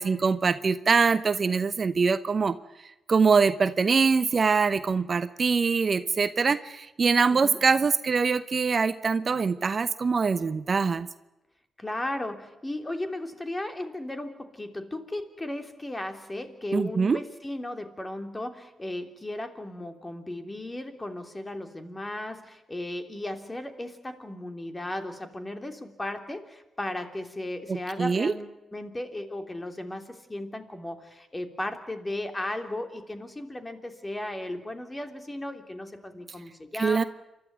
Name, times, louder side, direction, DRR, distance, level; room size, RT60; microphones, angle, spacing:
voice 1, 0.0-2.6 3.1-11.1 16.7-17.2 27.7-28.3 36.8-37.0, right 5 dB, 50° right, 13 dB, 0.9 m, -23 dB
voice 2, 7.3-7.6 11.8-37.1, left 1 dB, 20° left, 6 dB, 3.2 m, -35 dB
28.5 x 12.5 x 9.5 m, 0.97 s
hypercardioid pair, 45°, 0 cm